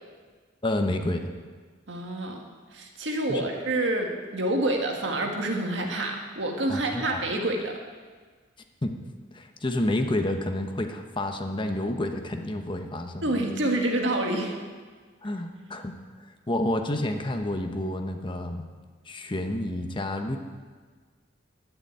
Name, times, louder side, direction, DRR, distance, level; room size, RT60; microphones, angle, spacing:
voice 1, 0.6-1.3 3.3-3.5 6.7-7.2 8.8-9.0 9.3-13.4 15.2-15.9 16.5-18.6 19.1-20.4, left 1 dB, 25° left, 5 dB, 0.9 m, -29 dB
voice 2, 1.9-7.7 13.2-14.5, right 1 dB, 75° right, 2 dB, 1.8 m, -28 dB
11.5 x 6.8 x 9.1 m, 1.5 s
head